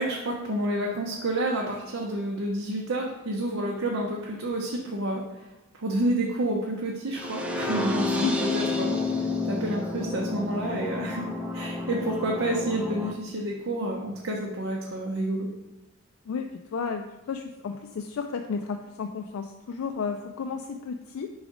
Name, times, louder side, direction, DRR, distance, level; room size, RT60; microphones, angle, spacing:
voice 1, 0.0-5.5 5.8-9.0 9.4-15.5, right 1 dB, 85° right, -1 dB, 0.7 m, -29 dB
sound 1, 7.1-13.1, left 2 dB, 5° right, 0.4 m, -30 dB
voice 2, 16.3-21.3, left 5 dB, 85° left, 5 dB, 0.4 m, -33 dB
4.9 x 3.9 x 4.9 m, 1.0 s
head